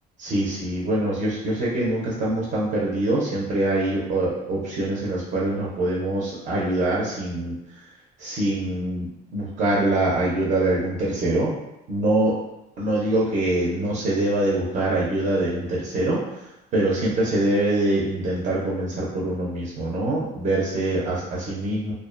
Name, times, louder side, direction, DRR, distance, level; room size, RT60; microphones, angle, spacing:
voice 1, 0.2-7.5 8.2-11.5 11.9-12.3 12.8-16.2 16.7-21.9, right 1 dB, 50° right, -5 dB, 0.6 m, -24 dB
2.4 x 2.1 x 2.4 m, 0.90 s
cardioid pair, 110°, 17 cm